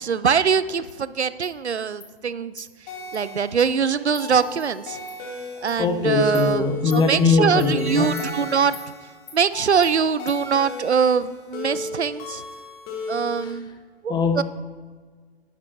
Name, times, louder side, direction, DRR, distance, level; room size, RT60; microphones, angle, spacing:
voice 1, 0.0-2.7 3.1-5.0 5.6-6.6 6.9-8.8 9.3-12.4 13.1-13.7 14.0-14.4, right 6 dB, 85° right, 16 dB, 0.5 m, -23 dB
Insect, 0.9-1.0 1.4-1.5 2.0-2.1 2.6-2.7 3.1-3.2 3.6-3.7 4.1-4.2 4.6-4.7 5.1-5.2 5.7-5.8 6.3-6.5 6.9-7.0 7.6-7.7 8.2-8.3 8.7-8.9 9.3-9.4 9.8-9.9 10.3-10.4, left 6 dB, 55° left, 2.5 m, -42 dB
sound 1, 2.9-13.5, left 2 dB, 30° left, 1.6 m, -36 dB
voice 2, 5.8-8.1 13.4-13.5 14.1-14.4, left 4 dB, 15° left, 7 dB, 0.7 m, -21 dB
10.0 x 8.7 x 4.4 m, 1.5 s
figure-of-eight pair, 110°, 32 cm